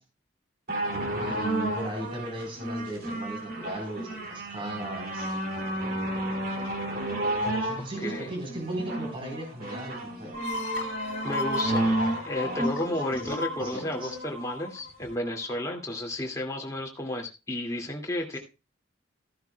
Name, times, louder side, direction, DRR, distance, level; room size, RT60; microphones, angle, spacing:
sound 1, 0.7-14.2 15.0-15.1, right 1 dB, 45° right, 2.7 m, -32 dB
voice 1, 1.2-5.3 7.4-10.3 12.0-12.2 12.4-12.8 13.2-14.1, right 1 dB, 25° right, 2 dB, 4.2 m, -37 dB
sound 2, 10.3-15.8, left 2 dB, 60° left, 1.8 m, -35 dB
voice 2, 11.2-12.0 12.2-18.4, left 1 dB, 15° left, 0 dB, 2.4 m, -32 dB
14.5 x 11.5 x 2.3 m, 0.28 s
head